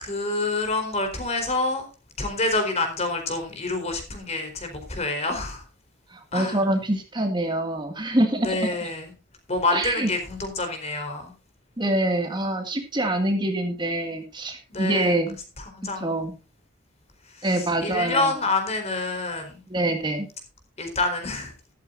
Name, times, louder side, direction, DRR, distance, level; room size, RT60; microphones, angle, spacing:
voice 1, 0.0-1.9 2.2-5.6 6.3-6.6 8.4-9.1 9.5-11.3 14.7-15.2 15.6-16.2 17.3-19.6 20.8-21.5, left 2 dB, 35° left, 6 dB, 4.1 m, -27 dB
voice 2, 6.1-8.9 9.7-10.1 11.8-15.4 16.0-16.3 17.4-18.3 19.7-20.3, right 1 dB, 25° right, 4 dB, 2.0 m, -25 dB
14.0 x 13.5 x 2.6 m, 0.32 s
head